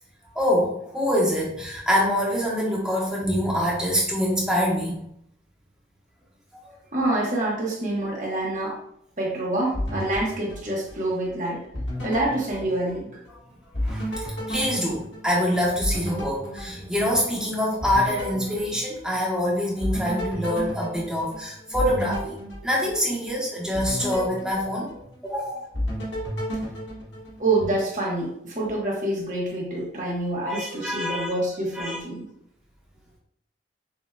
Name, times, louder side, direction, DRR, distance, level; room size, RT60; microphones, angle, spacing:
voice 1, 0.3-5.0 6.6-6.7 13.8-22.4 22.6-24.9 25.2-25.6 30.5-31.3 31.7-32.0, equal, 5° right, -5 dB, 1.1 m, -25 dB
voice 2, 6.9-8.8 9.2-11.6 12.0-13.2 27.4-32.2, right 2 dB, 45° right, -4 dB, 1.2 m, -27 dB
sound 1, 9.7-11.3 11.7-13.4 13.7-17.4 17.8-19.4 19.8-23.3 23.7-25.4 25.7-27.7, equal, 85° left, 1.6 m, -32 dB
6.1 x 3.0 x 2.3 m, 0.73 s
head